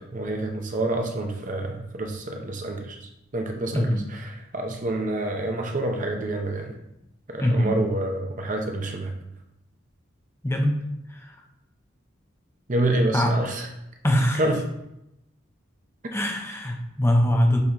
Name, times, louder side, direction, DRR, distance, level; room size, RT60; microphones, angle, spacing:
voice 1, 0.0-3.0 3.3-4.2 4.5-6.7 7.3-9.1 12.7-13.7 14.1-14.6, right 1 dB, 40° right, 3 dB, 0.7 m, -27 dB
voice 2, 3.7-4.1 7.4-7.9 10.4-10.8 11.1-11.4 13.1-13.4 14.0-14.5 16.1-17.6, equal, 15° left, 2 dB, 0.7 m, -22 dB
8.1 x 4.1 x 3.0 m, 0.86 s
head